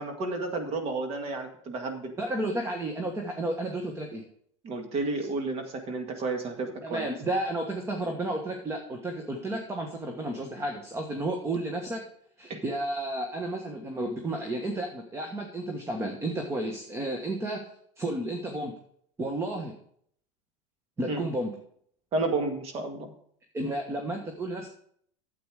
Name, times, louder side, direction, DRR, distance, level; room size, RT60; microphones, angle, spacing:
voice 1, 0.0-2.1 4.6-7.1 12.5-12.6 21.1-21.2 22.1-23.1, right 3 dB, 40° right, 5 dB, 2.0 m, -31 dB
voice 2, 2.2-4.2 6.8-12.0 12.4-17.7 18.0-18.7 19.2-19.7 21.0-21.5 23.5-24.7, right 1 dB, 15° right, 3 dB, 1.4 m, -32 dB
9.2 x 8.0 x 4.9 m, 0.63 s
supercardioid pair, 120°, 15 cm